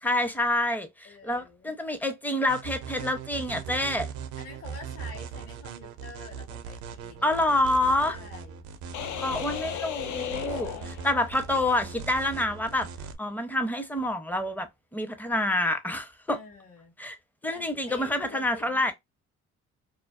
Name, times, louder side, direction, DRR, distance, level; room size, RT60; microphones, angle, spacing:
voice 1, 0.0-4.1 7.2-8.2 9.2-10.7 11.0-12.9 13.2-16.4 17.0-17.2 17.4-18.9, left 1 dB, 5° left, 0.5 m, -27 dB
voice 2, 1.0-1.8 4.4-7.4 8.0-8.6 10.6-11.2 16.3-16.9 17.5-18.9, left 4 dB, 45° left, 1.0 m, -47 dB
sound 1, 2.5-13.2, right 6 dB, 75° right, 0.5 m, -40 dB
sound 2, 8.9-11.6, left 10 dB, 75° left, 0.5 m, -36 dB
2.4 x 2.2 x 2.3 m
cardioid pair, 90°, 30 cm